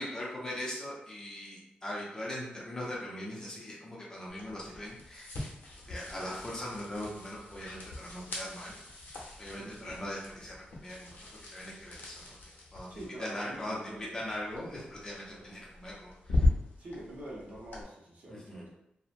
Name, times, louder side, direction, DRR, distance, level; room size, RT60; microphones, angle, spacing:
voice 1, 0.0-5.3 5.9-8.7 9.4-11.1 11.5-12.4 12.7-16.5 18.3-18.6, left 1 dB, 20° left, -5 dB, 0.5 m, -40 dB
sound 1, 4.3-17.8, left 2 dB, 80° left, 0.7 m, -38 dB
voice 2, 9.6-10.0 12.9-14.2 15.3-15.5 16.8-18.7, right 1 dB, 50° right, -5 dB, 0.7 m, -46 dB
2.8 x 2.1 x 2.4 m, 0.86 s
wide cardioid pair, 180°, 3 cm